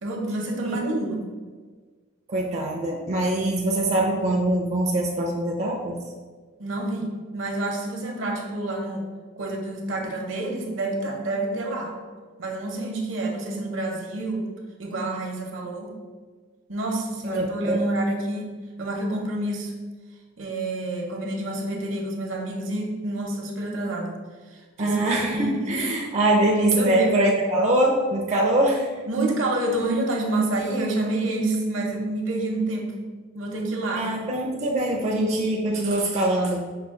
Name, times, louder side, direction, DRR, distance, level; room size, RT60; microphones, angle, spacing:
voice 1, 0.0-1.2 6.6-9.1 9.4-11.9 12.4-14.5 14.8-15.9 16.7-19.7 20.4-24.2 24.8-25.0 25.3-26.1 26.7-27.2 29.1-33.0 33.3-34.1, right 2 dB, 70° right, 1 dB, 0.8 m, -28 dB
voice 2, 0.6-1.1 2.3-6.0 17.2-17.8 24.8-28.9 33.9-36.6, right 1 dB, 35° right, -1 dB, 0.4 m, -23 dB
5.5 x 2.3 x 3.6 m, 1.5 s
head